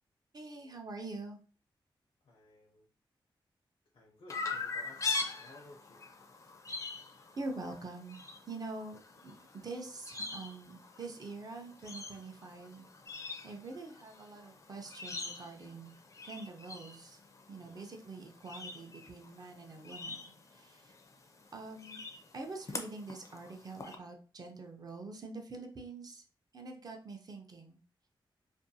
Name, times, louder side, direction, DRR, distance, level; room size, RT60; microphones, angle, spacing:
voice 1, 0.3-1.4 7.4-8.2 8.5-9.4 9.6-12.9 13.1-15.9 16.2-17.2 17.5-20.2 20.5-20.9 21.5-22.0 22.3-26.2 26.5-27.8, right 3 dB, 45° right, 3 dB, 0.6 m, -45 dB
voice 2, 2.2-2.9 3.9-6.0 17.6-17.8, left 2 dB, 80° left, -3 dB, 0.6 m, -57 dB
Chirp tweet, 4.3-23.9, left 3 dB, 35° left, 0.4 m, -43 dB
2.5 x 2.2 x 2.6 m, 0.40 s
wide cardioid pair, 110°, 9 cm